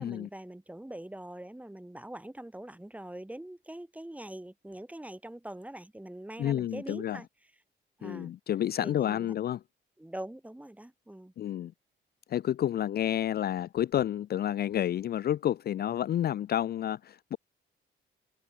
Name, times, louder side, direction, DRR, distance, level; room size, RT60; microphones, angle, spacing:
voice 1, 0.0-7.3 8.0-8.3 8.8-9.3 10.0-11.3, right 1 dB, 5° right, 4.8 m, -43 dB
voice 2, 6.4-7.2 8.0-9.6 11.4-11.7 12.3-17.4, left 11 dB, 50° left, 0.5 m, -30 dB
cardioid pair, 90°, 20 cm